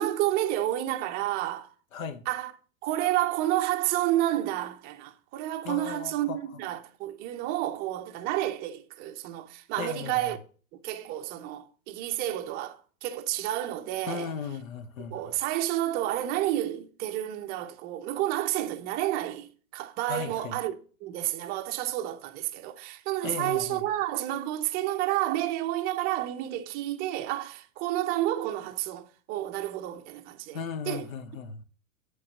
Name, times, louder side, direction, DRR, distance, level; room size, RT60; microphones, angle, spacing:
voice 1, 0.0-1.7 2.3-2.5 2.8-10.4 10.8-14.3 15.1-31.1, right 14 dB, 25° right, 0.5 m, -30 dB
voice 2, 1.9-2.2 5.6-6.4 9.8-10.3 14.1-15.2 20.1-20.5 23.2-23.8 30.5-31.6, left 6 dB, 70° left, 1.0 m, -36 dB
8.3 x 3.8 x 6.3 m
figure-of-eight pair, 105°, 42 cm